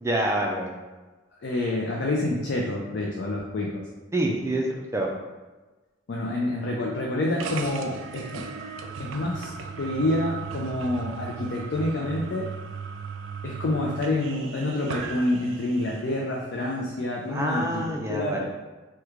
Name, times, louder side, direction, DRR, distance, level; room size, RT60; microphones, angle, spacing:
voice 1, 0.0-0.8 4.1-4.7 4.9-5.1 17.3-18.4, right 1 dB, 15° right, 0 dB, 0.3 m, -26 dB
voice 2, 1.4-3.8 6.1-8.4 9.0-9.5 9.8-12.5 13.4-18.4, left 1 dB, 65° left, -2 dB, 0.4 m, -28 dB
sound 1, 7.4-16.1, right 5 dB, 85° right, 0.3 m, -37 dB
3.1 x 2.2 x 3.5 m, 1.2 s
head